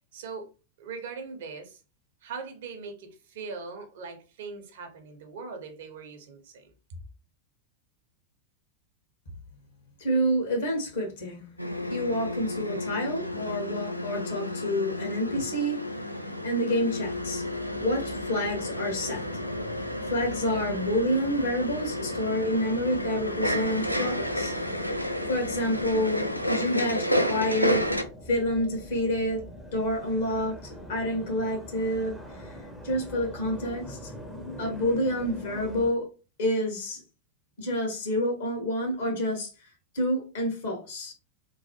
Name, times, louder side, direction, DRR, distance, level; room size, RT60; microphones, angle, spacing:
voice 1, 0.1-0.5 0.8-1.8 2.2-7.0, right 4 dB, 55° right, 0.7 m, -40 dB
voice 2, 10.0-11.4 11.9-17.4 17.8-19.2 20.1-24.5 25.3-27.9 28.3-29.5 29.7-32.5 32.8-34.1 34.6-36.1 36.4-37.0 37.6-39.7 39.9-41.1, equal, 60° left, 1.2 m, -28 dB
sound 1, 11.6-28.0, left 1 dB, 90° left, 0.3 m, -31 dB
sound 2, 17.0-35.9, equal, 5° left, 0.6 m, -44 dB
3.0 x 2.1 x 2.9 m
figure-of-eight pair, 90°, 0 cm